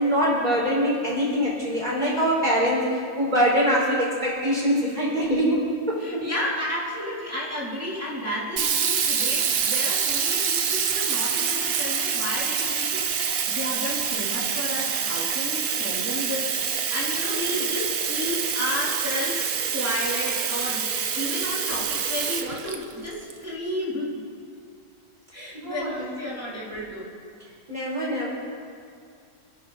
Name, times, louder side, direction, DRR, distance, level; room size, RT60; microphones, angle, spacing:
voice 1, 0.0-6.2 25.6-26.4 27.7-28.3, equal, 25° right, -5 dB, 5.2 m, -24 dB
voice 2, 6.0-20.9 21.1-24.2 25.3-27.2, left 1 dB, 10° right, -7 dB, 3.4 m, -32 dB
Sink (filling or washing), 8.6-23.3, right 7 dB, 60° right, 1.3 m, -26 dB
28.5 x 11.0 x 4.1 m, 2.3 s
omnidirectional pair, 1.7 m